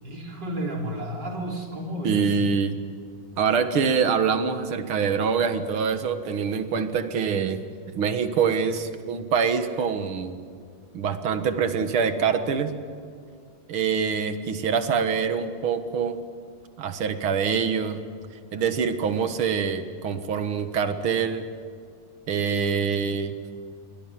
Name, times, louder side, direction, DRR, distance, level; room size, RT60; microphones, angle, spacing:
voice 1, 0.0-2.2, right 1 dB, 55° right, 0 dB, 4.2 m, -32 dB
voice 2, 2.0-2.8 3.4-7.6 8.0-10.4 10.9-12.7 13.7-16.2 16.8-18.0 18.5-21.4 22.3-23.4, right 6 dB, 85° right, 9 dB, 2.4 m, -25 dB
28.0 x 23.0 x 7.6 m, 2.2 s
omnidirectional pair, 2.3 m